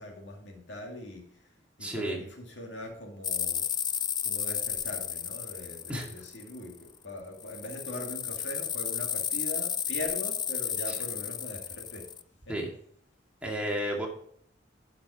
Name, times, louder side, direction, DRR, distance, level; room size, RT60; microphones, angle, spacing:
voice 1, 0.0-12.2 12.5-12.6, left 1 dB, 75° left, 2 dB, 2.3 m, -42 dB
voice 2, 1.8-2.2 5.9-6.1 10.9-11.0 12.5-12.7 13.4-14.1, equal, 5° right, -1 dB, 2.1 m, -32 dB
sound 1, 3.2-6.8 7.4-12.2, left 9 dB, 25° left, 0.3 m, -33 dB
11.5 x 5.9 x 4.9 m, 0.62 s
head